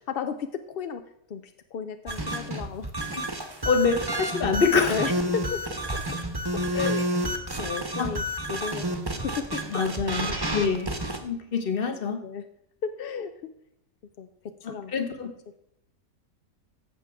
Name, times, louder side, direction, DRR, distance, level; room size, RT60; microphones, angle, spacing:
voice 1, 0.1-1.0 1.3-2.9 4.9-5.7 5.9-6.0 6.5-7.1 7.6-9.6 10.3-10.4 12.2-12.5 12.8-13.3 14.2-14.9, left 6 dB, 60° left, 8 dB, 0.6 m, -34 dB
sound 1, 2.1-11.2, equal, 20° right, 1.0 m, -30 dB
voice 2, 3.6-4.9 6.7-6.9 8.0-8.1 9.7-10.9 11.2-12.2 14.9-15.3, left 5 dB, 45° left, 7 dB, 1.2 m, -25 dB
15.5 x 5.9 x 3.5 m, 0.79 s
omnidirectional pair, 1.5 m